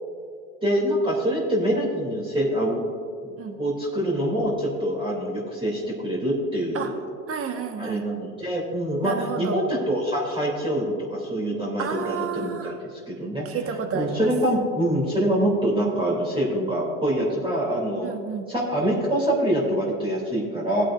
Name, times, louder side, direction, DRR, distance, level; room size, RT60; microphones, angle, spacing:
voice 1, 0.6-2.8 3.2-3.3 3.6-7.0 7.8-12.7 13.1-13.6 13.9-18.1 18.5-20.8, right 1 dB, 10° right, -5 dB, 2.9 m, -25 dB
voice 2, 7.3-8.0 9.0-9.6 11.8-12.7 13.4-14.3 18.0-18.5, right 6 dB, 35° right, 5 dB, 1.4 m, -30 dB
18.0 x 8.9 x 2.6 m, 2.4 s
supercardioid pair, 105°, 41 cm